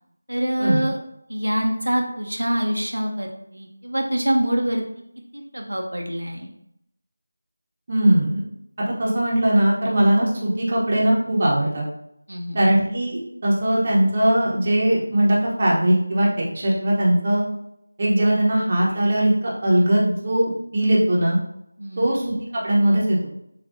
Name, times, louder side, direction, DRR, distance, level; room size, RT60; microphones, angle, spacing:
voice 1, 0.3-1.0 1.3-4.8 5.3-6.5 12.3-12.7 21.8-22.1, right 1 dB, 80° right, 1 dB, 0.8 m, -25 dB
voice 2, 7.9-8.4 9.0-11.8 12.5-16.3 16.5-17.4 18.0-21.4 22.0-22.2 22.5-23.3, right 1 dB, 30° right, -4 dB, 1.0 m, -20 dB
7.1 x 2.6 x 2.6 m, 0.77 s
figure-of-eight pair, 165°, 0 cm